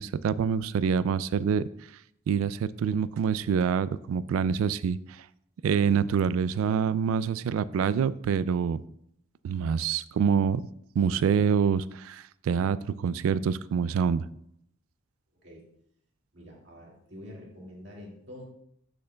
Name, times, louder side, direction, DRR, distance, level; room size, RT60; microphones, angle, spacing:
voice 1, 0.0-1.7 2.3-5.2 5.6-8.8 9.4-10.6 11.0-14.3, right 7 dB, 90° right, 0.3 m, -26 dB
voice 2, 16.3-18.4, left 1 dB, 55° right, 2.0 m, -46 dB
7.9 x 6.6 x 2.2 m
head